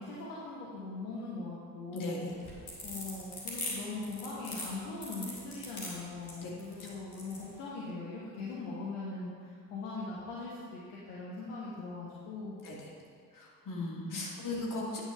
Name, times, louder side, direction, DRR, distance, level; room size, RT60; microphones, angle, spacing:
voice 1, 0.0-2.3 2.8-12.6 14.0-14.4, left 3 dB, 65° left, -6 dB, 1.3 m, -41 dB
voice 2, 1.9-2.4 6.4-6.5 6.9-7.0 12.6-12.9 13.3-15.0, left 2 dB, 45° left, -4 dB, 2.2 m, -37 dB
sound 1, 2.3-7.4, left 2 dB, 85° left, 1.4 m, -41 dB
9.1 x 5.4 x 5.4 m, 2.2 s
figure-of-eight pair, 40°, 44 cm